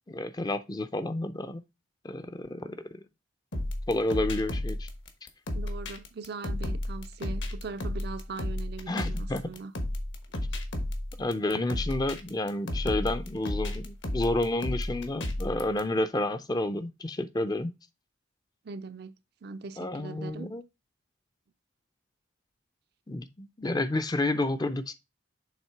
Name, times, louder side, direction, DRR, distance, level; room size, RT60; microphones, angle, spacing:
voice 1, 0.1-1.6 2.0-2.8 3.9-4.9 8.9-9.4 11.2-17.7 19.8-20.6 23.1-24.9, left 2 dB, 20° left, 0.4 m, -30 dB
sound 1, 3.5-15.8, left 1 dB, 65° left, 1.1 m, -33 dB
voice 2, 5.5-9.7 18.6-19.1 19.4-20.5, right 4 dB, 50° right, 0.4 m, -40 dB
7.4 x 3.2 x 4.5 m
head